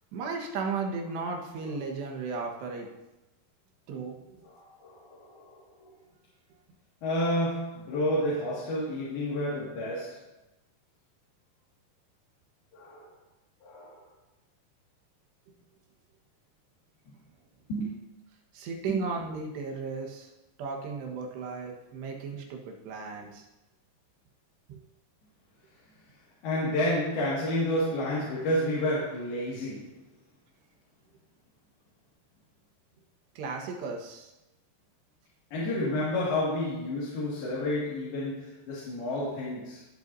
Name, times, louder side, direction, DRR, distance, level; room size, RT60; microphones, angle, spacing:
voice 1, 0.1-2.9 3.9-4.5 18.5-20.3 20.6-23.5 24.7-24.8 33.4-34.3 37.4-37.5, right 4 dB, 85° right, 1 dB, 3.6 m, -35 dB
voice 2, 4.5-5.9 7.0-10.3 12.7-13.1 13.6-14.1 17.1-17.2 17.7-18.0 26.4-29.9 35.5-39.8, left 1 dB, 65° left, -7 dB, 4.0 m, -30 dB
19.0 x 8.0 x 2.7 m, 0.96 s
omnidirectional pair, 4.8 m